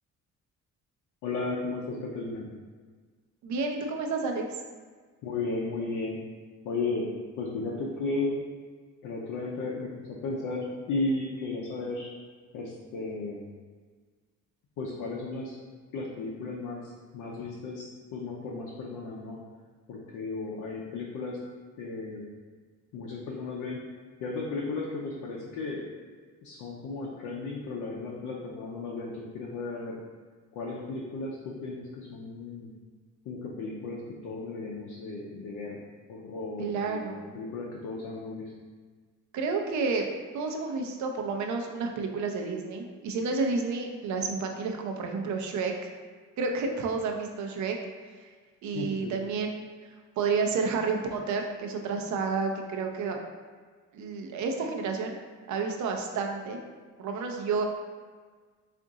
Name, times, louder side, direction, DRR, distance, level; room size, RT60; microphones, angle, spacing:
voice 1, 1.2-2.5 5.2-6.2 6.6-7.1 7.4-8.4 9.0-12.1 12.5-13.5 14.8-15.6 15.9-19.4 19.9-21.4 21.8-22.2 22.9-23.8 24.2-25.9 26.4-30.0 30.5-32.7 33.3-35.8 36.1-38.5 48.7-49.1, left 3 dB, 90° left, -3 dB, 0.6 m, -35 dB
voice 2, 3.4-4.5 36.6-37.3 39.3-40.0 40.3-45.9 46.4-47.8 48.6-49.6 50.2-53.2 53.9-55.2 55.5-56.6 57.0-57.6, right 4 dB, 70° right, 2 dB, 0.6 m, -30 dB
3.6 x 2.5 x 3.8 m, 1.5 s
cardioid pair, 90°, 30 cm